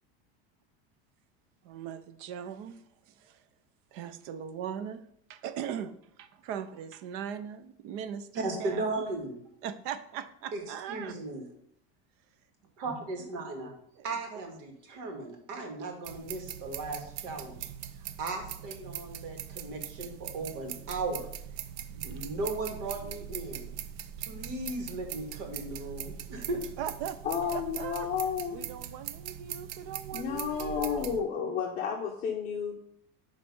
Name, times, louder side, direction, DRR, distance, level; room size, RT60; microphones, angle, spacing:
voice 1, 1.6-3.4 3.9-8.9 9.6-11.2 14.0-14.4 26.8-27.2 27.5-28.1 28.5-31.6, right 8 dB, 50° right, 12 dB, 0.6 m, -40 dB
voice 2, 8.3-9.4 10.5-10.6 10.9-11.4 12.8-13.7 14.0-17.6 18.2-21.3 21.9-23.7 24.2-26.6, right 2 dB, 65° right, 3 dB, 2.0 m, -36 dB
sound 1, 16.0-31.2, right 10 dB, 85° right, 0.7 m, -41 dB
voice 3, 27.2-28.6 30.1-32.7, left 7 dB, 30° left, -2 dB, 0.9 m, -32 dB
9.6 x 3.3 x 5.4 m, 0.70 s
cardioid pair, 170°, 30 cm